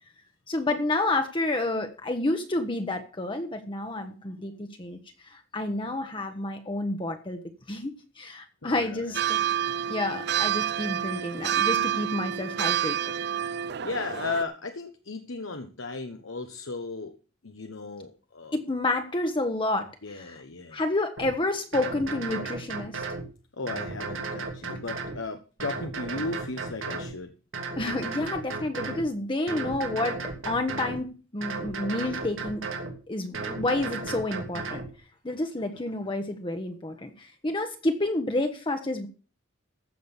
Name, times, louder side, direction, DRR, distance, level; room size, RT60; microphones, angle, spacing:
voice 1, 0.5-5.0 5.3-7.4 7.7-9.5 9.9-13.0 18.5-20.4 20.7-23.0 27.8-30.2 30.4-32.6 33.1-34.8 35.2-39.1, left 2 dB, 25° left, 5 dB, 1.1 m, -29 dB
voice 2, 8.6-9.2 13.8-17.2 17.4-18.6 20.0-20.8 23.5-27.3 33.3-33.6, left 3 dB, 80° left, 6 dB, 1.1 m, -36 dB
sound 1, 9.1-14.4, right 10 dB, 60° right, 0.5 m, -28 dB
sound 2, 21.2-21.3 21.7-23.2 23.7-25.2 25.6-27.1 27.5-29.1 29.5-31.0 31.4-32.9 33.3-34.9, right 4 dB, 85° right, 2.9 m, -34 dB
15.0 x 6.1 x 7.1 m, 0.36 s
head